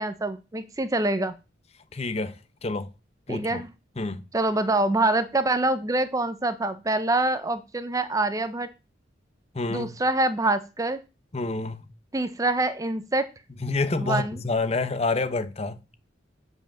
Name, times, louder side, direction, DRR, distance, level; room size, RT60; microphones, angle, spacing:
voice 1, 0.0-1.3 3.3-3.7 4.3-8.7 9.7-11.0 12.1-13.3 14.0-14.4, right 2 dB, 20° right, 0.6 m, -25 dB
voice 2, 1.9-2.3 2.6-2.9 3.3-3.6 4.0-4.2 9.5-9.9 11.3-11.9 13.6-15.8, left 3 dB, 35° left, 0.8 m, -28 dB
7.8 x 4.9 x 7.1 m
head